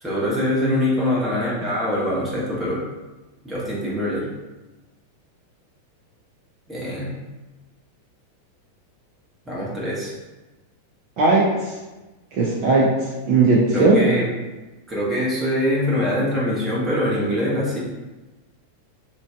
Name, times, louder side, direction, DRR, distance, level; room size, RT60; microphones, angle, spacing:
voice 1, 0.0-2.8 3.4-4.3 6.7-7.1 9.5-10.1 13.7-14.3 14.9-17.8, left 1 dB, 10° right, -7 dB, 1.0 m, -23 dB
voice 2, 11.2-11.7 12.3-14.1, right 3 dB, 45° right, -4 dB, 0.5 m, -18 dB
2.5 x 2.2 x 3.3 m, 1.1 s
figure-of-eight pair, 90°, 0 cm